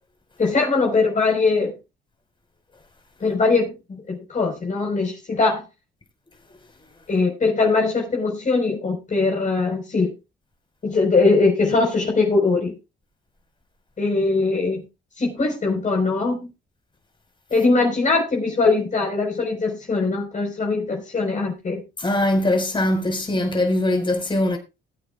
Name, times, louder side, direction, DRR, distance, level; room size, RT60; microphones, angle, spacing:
voice 1, 0.4-1.7 3.2-5.6 7.1-10.1 10.8-12.7 14.0-14.8 15.2-16.4 17.5-21.8, left 3 dB, 40° left, 4.5 m, -21 dB
voice 2, 22.0-24.6, left 1 dB, 25° left, 4.9 m, -21 dB
20.5 x 8.9 x 2.4 m
cardioid pair, 90°, 20 cm